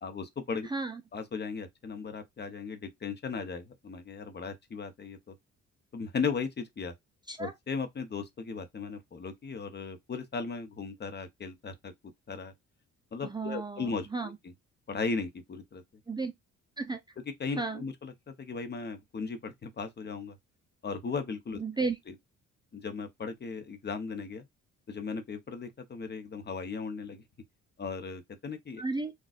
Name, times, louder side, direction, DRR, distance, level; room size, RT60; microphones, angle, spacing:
voice 1, 0.0-0.7 1.1-5.3 5.9-6.9 7.4-11.9 12.3-12.5 13.1-14.5 14.9-15.8 17.4-20.4 20.8-21.6 22.1-22.2 22.7-24.5 24.9-27.2 27.8-28.8, left 5 dB, 35° left, 0.8 m, -37 dB
voice 2, 0.6-1.0 7.3-7.5 13.2-14.4 16.1-16.3 16.8-17.0 17.6-17.8 21.6-22.0 28.8-29.1, right 3 dB, 15° right, 0.5 m, -33 dB
3.9 x 2.4 x 2.4 m
cardioid pair, 90°, 30 cm